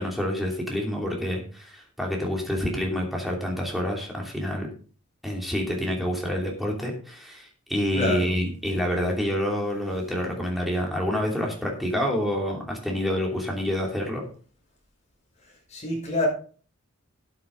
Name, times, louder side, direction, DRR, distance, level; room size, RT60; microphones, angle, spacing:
voice 1, 0.0-4.7 5.2-14.2, equal, ahead, -1 dB, 2.9 m, -28 dB
voice 2, 7.9-8.4 15.4-16.3, left 2 dB, 30° left, -1 dB, 5.5 m, -28 dB
13.0 x 8.7 x 3.9 m, 0.40 s
head